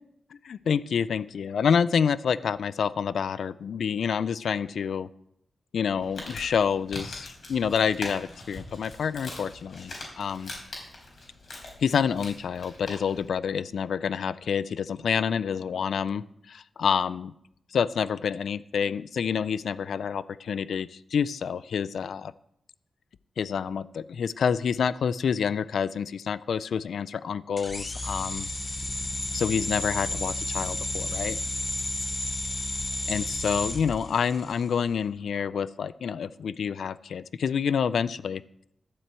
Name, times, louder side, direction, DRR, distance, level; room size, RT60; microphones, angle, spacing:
voice 1, 0.4-5.1 5.7-10.5 11.8-17.3 17.7-22.3 23.4-28.5 29.3-31.4 33.1-38.4, left 7 dB, 75° left, 17 dB, 0.4 m, -28 dB
Crumpling crinkling, 5.9-13.3, left 2 dB, 45° left, 4.3 m, -42 dB
sound 1, 27.6-34.7, left 2 dB, 20° left, 0.8 m, -32 dB
12.0 x 7.7 x 8.1 m, 0.76 s
wide cardioid pair, 175°, 0 cm